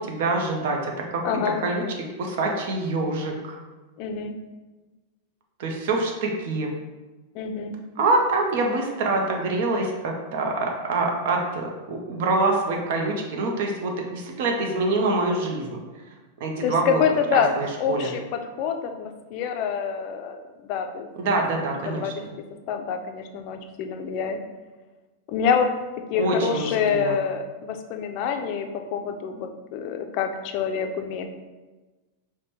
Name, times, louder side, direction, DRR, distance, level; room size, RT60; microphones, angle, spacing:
voice 1, 0.0-1.2 1.6-1.8 2.2-3.6 5.6-6.7 8.0-15.8 16.4-17.0 17.3-18.1 21.2-22.1 26.2-27.2, right 2 dB, 65° right, 1 dB, 0.6 m, -25 dB
voice 2, 1.2-1.6 4.0-4.3 7.3-7.8 16.6-17.5 17.8-21.4 21.9-22.2 22.7-24.4 25.3-25.7 26.1-31.3, left 7 dB, 50° left, 6 dB, 0.4 m, -26 dB
4.8 x 2.1 x 3.0 m, 1.2 s
supercardioid pair, 135°, 0 cm